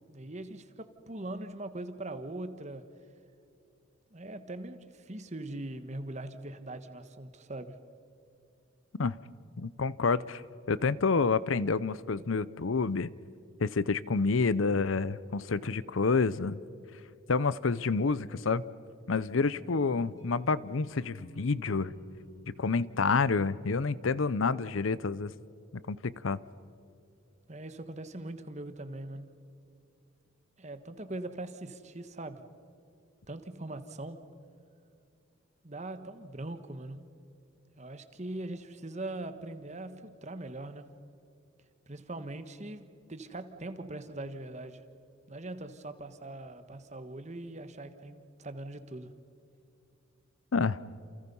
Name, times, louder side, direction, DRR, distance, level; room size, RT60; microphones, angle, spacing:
voice 1, 0.1-2.8 4.1-7.8 27.5-29.3 30.6-32.4 33.3-34.2 35.6-37.0 37.8-40.9 41.9-44.8 45.3-49.1, right 2 dB, 35° right, 10 dB, 1.4 m, -41 dB
voice 2, 9.6-10.4 10.7-13.1 13.6-16.6 17.3-18.6 19.1-21.9 22.6-25.3 25.9-26.4 50.5-50.8, left 4 dB, 75° left, 18 dB, 0.7 m, -28 dB
sound 1, 19.5-24.4, equal, 20° left, 4.0 m, -53 dB
29.0 x 28.5 x 5.5 m, 2.6 s
head